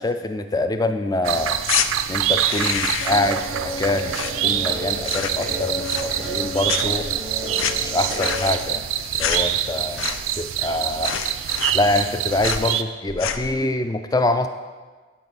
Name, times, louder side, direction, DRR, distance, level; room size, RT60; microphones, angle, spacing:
voice 1, 0.0-1.6 2.1-7.1 7.8-8.8 9.2-11.2 11.7-14.5, left 2 dB, 20° left, 8 dB, 0.3 m, -25 dB
sound 1, 1.2-12.8, right 10 dB, 85° right, 0.4 m, -26 dB
sound 2, 1.6-1.9 2.3-3.3 3.5-4.7 5.0-5.5 5.8-6.4 6.7-10.5 10.7-10.8 11.0-12.1 12.4-12.7 13.1-13.6, left 8 dB, 85° left, 0.4 m, -28 dB
Guitar, 3.0-8.4, right 1 dB, 55° left, 1.8 m, -32 dB
11.0 x 5.1 x 4.1 m, 1.4 s
head